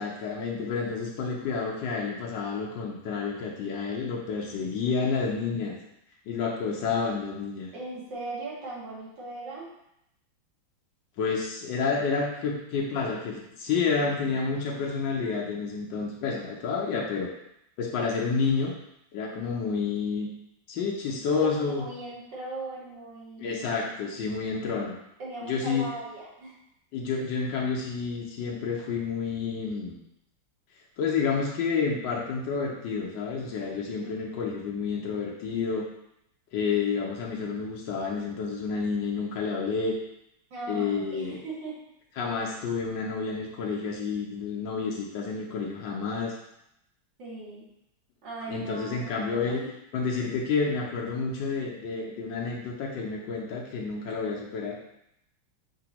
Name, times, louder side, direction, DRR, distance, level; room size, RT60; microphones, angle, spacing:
voice 1, 0.0-5.8 6.3-7.7 11.2-17.3 17.8-18.7 19.1-20.3 20.7-21.8 23.4-24.9 25.4-25.9 26.9-30.0 31.0-35.9 36.5-39.9 40.7-41.4 42.2-46.3 48.5-49.6 49.9-54.8, left 5 dB, 70° left, -2 dB, 1.3 m, -29 dB
voice 2, 7.7-9.7 21.4-24.3 25.2-26.6 33.8-34.4 40.5-41.8 47.2-47.7 48.2-49.7, right 2 dB, 65° right, -5 dB, 1.8 m, -39 dB
6.0 x 2.8 x 2.9 m, 0.81 s
omnidirectional pair, 2.2 m